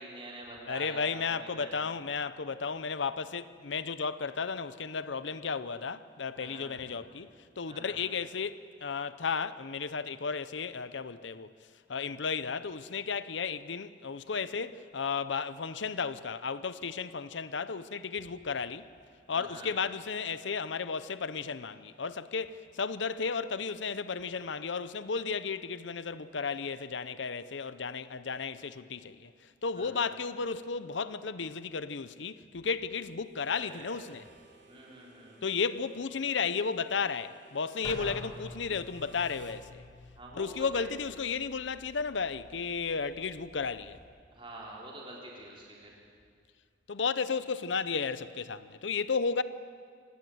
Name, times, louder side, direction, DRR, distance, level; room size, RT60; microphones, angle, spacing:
voice 1, 0.0-1.8 6.3-6.7 7.7-8.0 19.3-19.7 29.7-30.1 33.5-34.0 34.7-35.4 38.0-38.2 40.1-41.0 44.3-46.0, right 1 dB, 30° right, 4.0 m, -46 dB
voice 2, 0.7-7.3 7.6-11.5 11.9-18.9 19.3-29.3 29.6-34.2 35.4-39.8 40.3-44.0 46.9-49.4, left 5 dB, 75° left, 0.7 m, -34 dB
Harmonica, 33.3-39.6, right 3 dB, 65° right, 3.0 m, -58 dB
sound 1, 37.8-44.0, left 1 dB, 20° left, 5.5 m, -49 dB
27.0 x 18.0 x 7.9 m
head